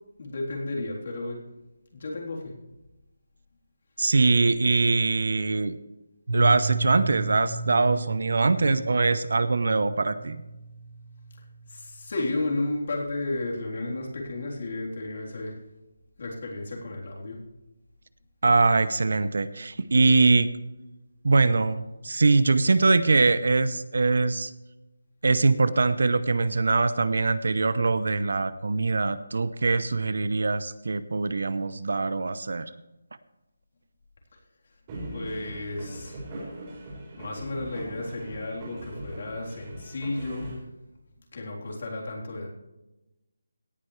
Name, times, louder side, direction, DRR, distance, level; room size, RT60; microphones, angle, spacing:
voice 1, 0.2-1.4 1.9-2.5 11.7-15.6 16.2-17.4 35.1-36.3 37.2-40.5 41.3-42.5, left 2 dB, 45° left, -2 dB, 3.7 m, -33 dB
voice 2, 4.0-5.7 6.3-10.4 18.4-20.5 21.2-24.5 25.2-32.7, right 3 dB, 60° right, 14 dB, 0.8 m, -22 dB
Piano, 6.3-11.9, right 3 dB, 85° right, 1.9 m, -33 dB
sound 1, 34.9-40.5, right 1 dB, 20° right, 4.6 m, -40 dB
17.5 x 10.5 x 3.3 m, 1.0 s
hypercardioid pair, 175°, 0 cm